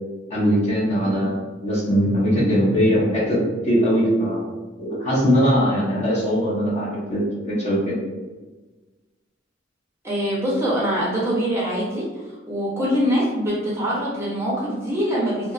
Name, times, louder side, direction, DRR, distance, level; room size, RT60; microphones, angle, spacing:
voice 1, 0.3-4.4 4.8-8.0, equal, 35° left, -5 dB, 0.7 m, -21 dB
voice 2, 10.0-12.2 12.5-15.5, equal, 15° right, -6 dB, 0.6 m, -23 dB
2.8 x 2.3 x 2.3 m, 1.2 s
head